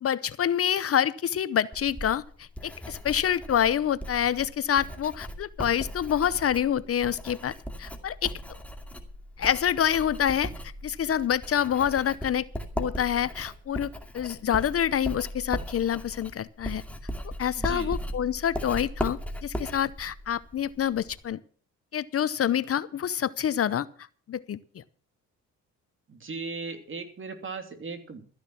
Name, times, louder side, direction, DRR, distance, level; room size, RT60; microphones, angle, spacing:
voice 1, 0.0-8.3 9.4-10.5 10.8-12.5 12.8-16.8 17.4-21.4 21.9-23.9 24.3-24.8, left 9 dB, 50° left, 17 dB, 0.8 m, -27 dB
Writing, 1.7-21.3, equal, 5° left, 2.4 m, -38 dB
voice 2, 17.6-18.0 26.1-28.2, right 4 dB, 40° right, 7 dB, 3.0 m, -37 dB
14.0 x 10.5 x 6.0 m, 0.42 s
cardioid pair, 90°, 30 cm